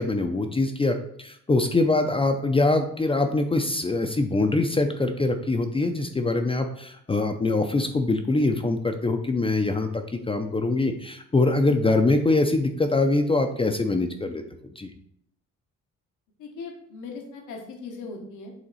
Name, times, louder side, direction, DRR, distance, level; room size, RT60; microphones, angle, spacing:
voice 1, 0.0-14.4 14.8-14.9, left 2 dB, 20° left, 5 dB, 0.5 m, -23 dB
voice 2, 16.4-18.5, left 4 dB, 85° left, 1 dB, 1.2 m, -39 dB
7.8 x 2.9 x 4.1 m, 0.72 s
cardioid pair, 90°, 30 cm